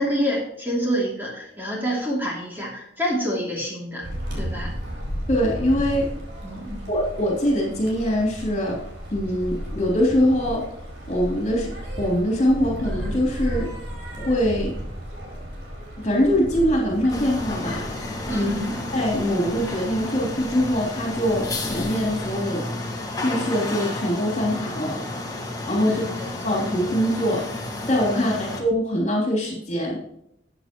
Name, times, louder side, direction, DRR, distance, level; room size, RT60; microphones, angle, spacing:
voice 1, 0.0-4.0 4.3-4.7 6.4-6.8 18.3-18.8 25.8-26.3 28.1-28.5, equal, 10° right, -4 dB, 2.8 m, -27 dB
sound 1, 4.0-22.5, equal, 65° right, 4.4 m, -34 dB
voice 2, 5.3-6.1 6.9-8.8 9.1-10.6 11.1-13.7 14.1-14.7 16.0-17.8 18.3-18.5 18.9-22.6 23.2-25.0 25.7-26.0 26.4-27.4 27.9-30.0, equal, 35° left, -2 dB, 3.2 m, -23 dB
sound 2, 17.1-28.6, left 2 dB, 20° left, 1.7 m, -31 dB
13.5 x 8.3 x 3.0 m, 0.77 s
head